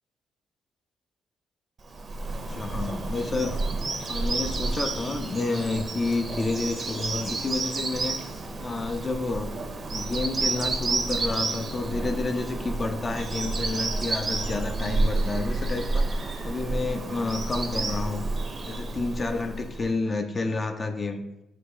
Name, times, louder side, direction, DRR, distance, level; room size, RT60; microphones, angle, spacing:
Bird vocalization bird call bird song, 1.9-19.9, right 3 dB, 40° right, 0.5 m, -30 dB
voice 1, 2.5-3.6 4.1-8.2 8.6-9.5 9.9-16.1 16.4-18.3 18.6-21.2, left 3 dB, 30° left, 6 dB, 0.4 m, -30 dB
3.3 x 3.0 x 4.7 m, 0.92 s
cardioid pair, 90°, 0 cm